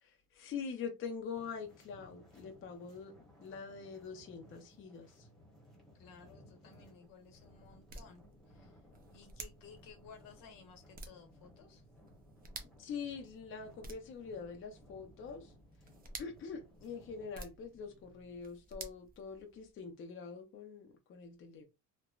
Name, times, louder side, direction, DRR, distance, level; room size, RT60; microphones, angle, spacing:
voice 1, 0.0-3.1 3.4-5.3 12.8-15.5 16.2-21.6, left 5 dB, 40° left, 0.5 m, -44 dB
sound 1, 1.3-17.4, equal, ahead, 1.0 m, -61 dB
voice 2, 6.0-8.8 9.1-11.8, left 6 dB, 75° left, 1.1 m, -57 dB
sound 2, 6.7-19.9, right 3 dB, 25° right, 0.5 m, -54 dB
3.0 x 2.1 x 2.3 m
cardioid pair, 135°, 34 cm